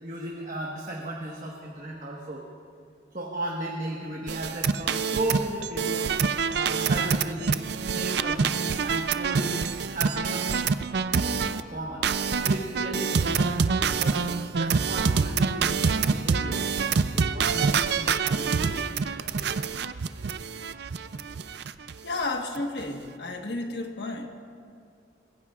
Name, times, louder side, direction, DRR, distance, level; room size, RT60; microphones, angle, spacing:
voice 1, 0.0-2.4 3.1-6.1 6.5-9.5 9.9-10.5 11.1-11.4 11.6-14.2 14.5-16.7 17.1-18.8 19.1-19.4, right 1 dB, 45° right, -2 dB, 1.4 m, -35 dB
sound 1, 4.3-11.6 12.0-21.9 22.2-22.3 22.6-22.8, right 5 dB, 60° right, 0.4 m, -26 dB
voice 2, 22.0-24.3, left 2 dB, 65° left, 2 dB, 1.3 m, -32 dB
25.5 x 20.5 x 2.4 m, 2.2 s
head